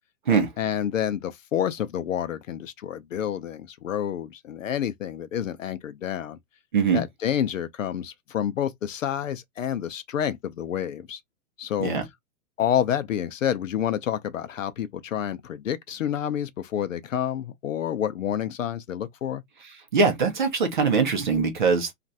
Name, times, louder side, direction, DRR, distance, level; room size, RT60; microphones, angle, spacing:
voice 1, 0.6-6.4 6.9-11.2 11.6-11.9 12.6-19.4, left 10 dB, 60° left, 0.6 m, -28 dB
voice 2, 19.9-21.9, right 5 dB, 35° right, 0.7 m, -22 dB
3.0 x 2.5 x 2.7 m
hypercardioid pair, 175°, 45 cm